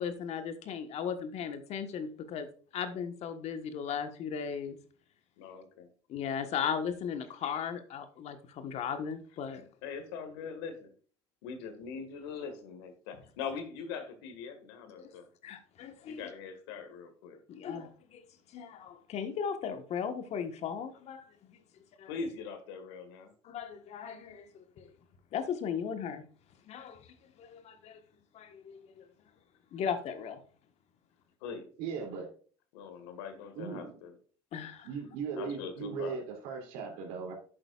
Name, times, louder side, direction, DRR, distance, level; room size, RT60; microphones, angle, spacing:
voice 1, 0.0-2.5 2.7-4.8 6.1-9.6 15.0-15.2 15.4-16.2 17.5-18.2 18.5-21.6 22.0-22.1 23.4-24.5 24.8-24.9 25.3-26.2 26.7-27.0 27.4-28.0 28.3-29.0 29.7-30.4 34.5-34.9, left 7 dB, 55° left, 8 dB, 1.3 m, -37 dB
voice 2, 5.4-5.9 9.8-10.9 11.4-15.3 16.0-17.4 22.1-23.3 31.4-31.7 32.7-34.1 35.4-36.2, left 5 dB, 80° left, 7 dB, 1.8 m, -42 dB
voice 3, 31.8-32.3 33.6-34.0 34.8-37.3, right 5 dB, 75° right, 2 dB, 2.8 m, -38 dB
11.0 x 7.7 x 2.4 m, 0.42 s
hypercardioid pair, 80°, 13 cm